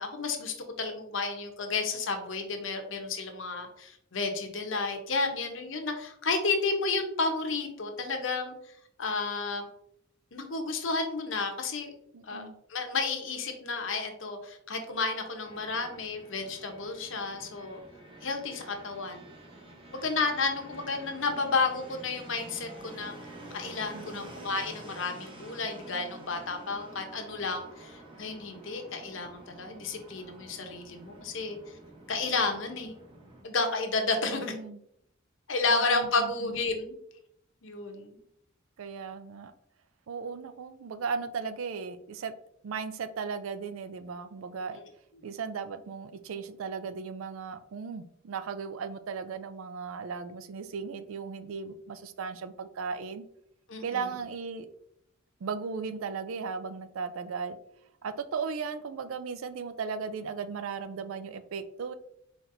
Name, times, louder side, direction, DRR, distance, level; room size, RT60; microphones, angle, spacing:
voice 1, 0.0-8.5 9.0-9.6 10.3-11.9 12.2-12.4 12.7-17.8 18.2-19.3 19.9-23.1 23.5-31.7 32.1-32.9 33.4-34.5 35.5-36.9 37.6-38.2 44.7-44.8 53.7-54.1, left 3 dB, 65° left, 5 dB, 0.8 m, -31 dB
voice 2, 12.1-12.6 23.9-24.3 34.2-34.8 35.7-36.6 38.8-39.5 40.1-42.3 42.6-44.8 45.2-53.2 53.8-54.7 55.4-57.6 58.0-61.9, right 5 dB, 85° right, 11 dB, 0.4 m, -36 dB
Fixed-wing aircraft airplane, 15.4-33.4, right 1 dB, 25° right, 0.9 m, -49 dB
4.3 x 4.1 x 2.6 m, 0.73 s
head